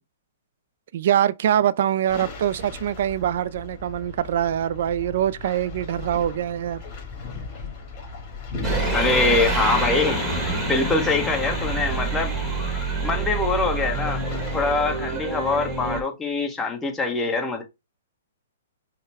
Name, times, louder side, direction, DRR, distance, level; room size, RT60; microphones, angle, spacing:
voice 1, 0.9-6.8, right 10 dB, 60° right, 0.3 m, -24 dB
sound 1, 2.1-14.9, left 4 dB, 30° left, 2.2 m, -37 dB
sound 2, 8.6-16.0, right 3 dB, 5° right, 1.4 m, -27 dB
voice 2, 8.9-12.3 13.0-14.2 14.5-17.6, left 3 dB, 10° left, 1.1 m, -24 dB
5.5 x 2.2 x 3.4 m
hypercardioid pair, 130°, 0 cm